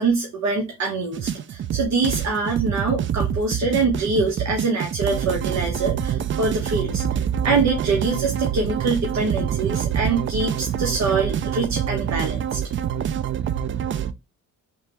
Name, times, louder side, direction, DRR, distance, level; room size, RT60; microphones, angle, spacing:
voice 1, 0.0-12.6, right 4 dB, 65° right, 1 dB, 1.1 m, -24 dB
sound 1, 1.1-14.1, right 9 dB, 40° right, 0.4 m, -26 dB
3.9 x 3.2 x 2.9 m, 0.24 s
cardioid pair, 90°, 30 cm